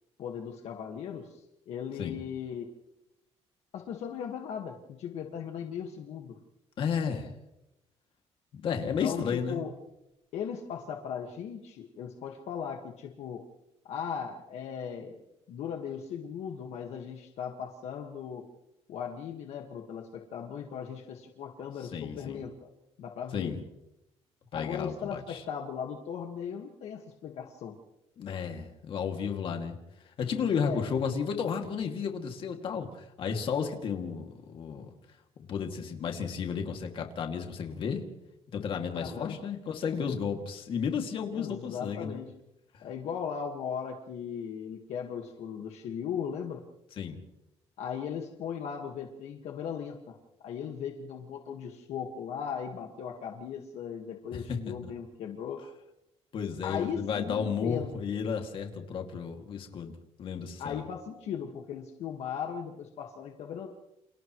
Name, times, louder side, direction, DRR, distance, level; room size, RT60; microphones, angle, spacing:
voice 1, 0.2-2.7 3.7-6.4 8.8-9.7 10.3-13.4 13.9-15.2 15.5-18.4 18.9-22.7 23.0-23.5 24.5-27.8 30.6-30.9 38.9-39.4 41.3-42.3 42.8-46.6 47.8-50.2 50.4-55.6 56.6-57.9 60.6-63.7, left 7 dB, 70° left, 2 dB, 1.7 m, -37 dB
voice 2, 6.8-7.3 8.5-9.6 21.9-22.4 23.3-23.6 24.5-25.4 28.2-29.8 30.0-34.9 35.4-38.1 38.5-42.2 42.7-42.8 47.0-47.2 54.3-54.6 56.3-60.8, left 6 dB, 50° left, 3 dB, 2.4 m, -33 dB
29.0 x 28.5 x 3.2 m, 0.90 s
cardioid pair, 170°, 11 cm